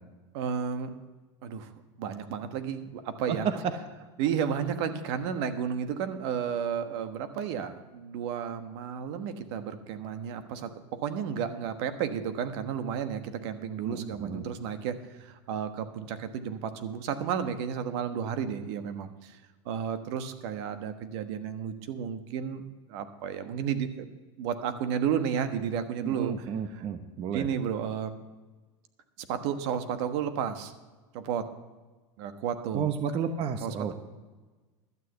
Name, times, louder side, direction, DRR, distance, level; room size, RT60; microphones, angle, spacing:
voice 1, 0.3-0.9 1.4-1.7 2.0-3.5 4.2-19.4 19.6-22.6 22.9-26.9 27.3-28.1 29.3-30.7 31.1-31.5 32.2-32.9 33.6-33.9, right 8 dB, 65° right, 8 dB, 1.3 m, -32 dB
voice 2, 3.3-3.7 13.9-14.5 26.0-27.5 32.7-33.9, right 7 dB, 40° right, 8 dB, 1.1 m, -31 dB
12.0 x 6.5 x 8.1 m, 1.3 s
supercardioid pair, 115°, 15 cm